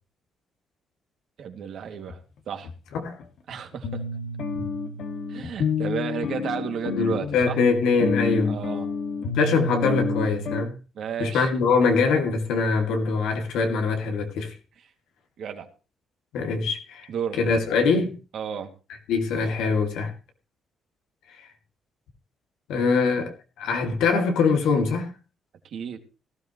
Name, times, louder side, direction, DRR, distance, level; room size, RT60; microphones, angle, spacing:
voice 1, 1.4-2.2 2.5-2.7 3.5-4.0 5.3-7.6 8.5-8.9 10.9-11.5 15.4-15.7 17.1-17.4 18.3-18.7 25.7-26.0, right 7 dB, 70° right, 2.3 m, -32 dB
sound 1, 2.1-2.2 2.6-2.7 3.2-3.3 3.8-10.6, left 4 dB, 70° left, 2.0 m, -29 dB
voice 2, 7.0-8.6 9.3-10.8 11.2-14.5 16.3-17.1 17.4-18.2 19.1-20.1 22.7-25.1, left 4 dB, 85° left, 2.5 m, -23 dB
17.5 x 13.0 x 3.1 m
cardioid pair, 90°, 0 cm